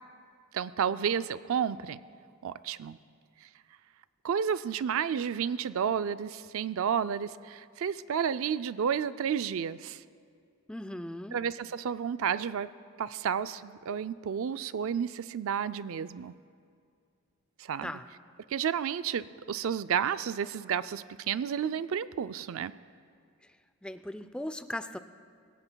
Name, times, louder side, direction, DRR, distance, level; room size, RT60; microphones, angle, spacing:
voice 1, 0.5-2.0 2.4-3.0 4.2-10.0 11.3-12.7 13.0-16.3 17.6-17.9 18.5-22.7, right 8 dB, 65° right, 14 dB, 0.4 m, -31 dB
voice 2, 10.7-11.4 17.8-18.1 23.8-25.0, left 1 dB, 5° left, 10 dB, 0.4 m, -38 dB
27.5 x 16.5 x 2.3 m, 2.2 s
head